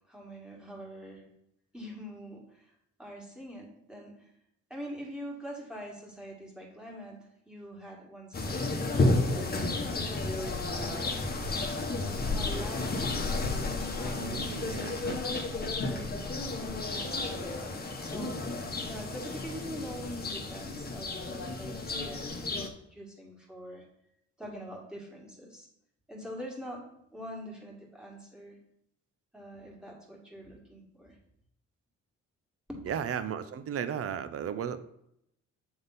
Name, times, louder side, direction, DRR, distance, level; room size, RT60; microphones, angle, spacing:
voice 1, 0.1-1.2 1.7-2.7 3.0-4.3 4.7-11.2 11.9-14.4 14.8-17.7 18.0-18.5 18.9-23.8 24.4-25.7 26.1-28.6 29.3-31.2 32.7-32.8, equal, 5° right, -2 dB, 2.0 m, -44 dB
sound 1, 8.3-22.7, left 2 dB, 30° left, 1.1 m, -32 dB
voice 2, 14.1-15.4 32.9-34.8, right 8 dB, 50° right, 12 dB, 0.6 m, -35 dB
7.9 x 3.6 x 4.0 m, 0.76 s
cardioid pair, 90°, 30 cm